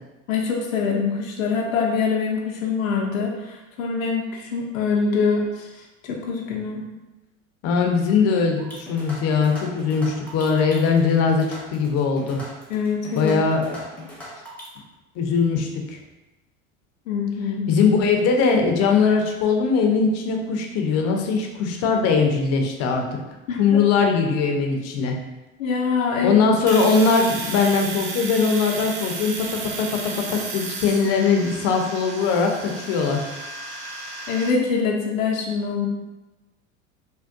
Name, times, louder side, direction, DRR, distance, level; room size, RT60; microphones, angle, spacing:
voice 1, 0.3-6.9 12.7-13.3 17.1-17.7 23.5-23.8 25.6-26.4 34.3-35.9, left 5 dB, 90° left, -1 dB, 0.6 m, -24 dB
voice 2, 7.6-12.4 13.1-13.8 15.2-16.0 17.7-23.0 23.6-25.2 26.2-33.3, left 5 dB, 40° left, 2 dB, 0.6 m, -21 dB
sound 1, 8.6-14.8, left 1 dB, 5° left, 0.8 m, -40 dB
Domestic sounds home sounds, 26.7-34.5, right 3 dB, 50° right, 0.6 m, -33 dB
3.5 x 2.2 x 2.5 m, 1.1 s
hypercardioid pair, 100°, 39 cm